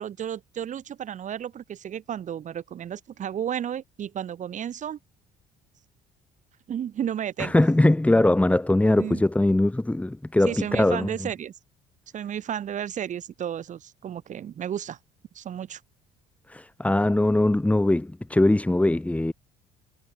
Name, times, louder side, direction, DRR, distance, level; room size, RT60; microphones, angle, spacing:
voice 1, 0.0-5.0 6.7-7.6 9.0-9.2 10.5-11.5 12.1-15.0 15.3-15.8, right 9 dB, 50° right, 6.4 m, -33 dB
voice 2, 7.4-11.3 16.5-19.3, left 1 dB, 10° left, 3.4 m, -21 dB
cardioid pair, 105°, 16 cm